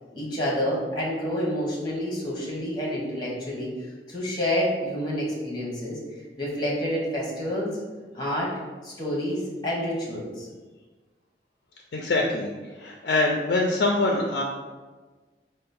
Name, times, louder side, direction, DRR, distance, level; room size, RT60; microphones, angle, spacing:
voice 1, 0.1-3.7 4.1-6.0 6.4-7.7 8.1-8.5 8.8-10.5, equal, 25° left, -4 dB, 1.0 m, -28 dB
voice 2, 11.9-12.5 12.7-14.4, left 2 dB, 65° left, 0 dB, 0.4 m, -24 dB
3.9 x 2.0 x 4.1 m, 1.3 s
head